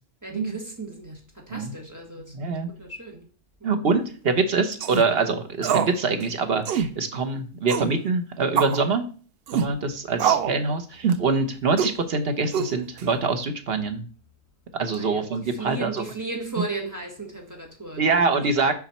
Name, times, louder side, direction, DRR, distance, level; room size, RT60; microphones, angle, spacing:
voice 1, 0.2-2.5 2.8-3.3 3.6-3.8 10.2-10.6 15.0-18.2 18.5-18.7, right 3 dB, 10° right, 1.4 m, -36 dB
voice 2, 2.3-2.7 3.6-9.0 9.5-14.0 14.7-16.0 18.0-18.7, right 4 dB, 45° right, 1.0 m, -24 dB
sound 1, 4.7-5.0 5.6-6.0 6.2-6.3 6.6-6.9 7.7-7.9 8.6-8.8 9.5-9.7 10.2-10.6 11.0-11.3 11.8-12.0 12.5-13.0, right 7 dB, 75° right, 0.5 m, -24 dB
6.0 x 5.5 x 4.2 m
omnidirectional pair, 1.6 m